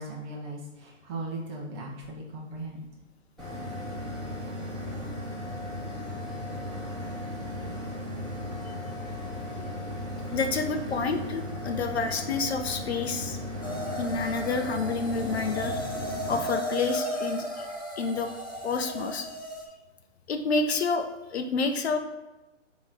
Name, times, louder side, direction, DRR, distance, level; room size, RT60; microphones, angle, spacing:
voice 1, 0.0-2.8, right 2 dB, 20° right, -2 dB, 0.9 m, -38 dB
sound 1, 3.4-16.4, left 1 dB, ahead, 1.5 m, -36 dB
voice 2, 10.3-13.4 14.0-15.9 16.3-17.7 18.0-18.3 18.6-19.3 20.3-22.0, left 4 dB, 55° left, 7 dB, 0.7 m, -29 dB
sound 2, 13.6-19.7, equal, 20° left, 0.3 m, -35 dB
8.8 x 3.1 x 3.8 m, 1.0 s
hypercardioid pair, 150°, 38 cm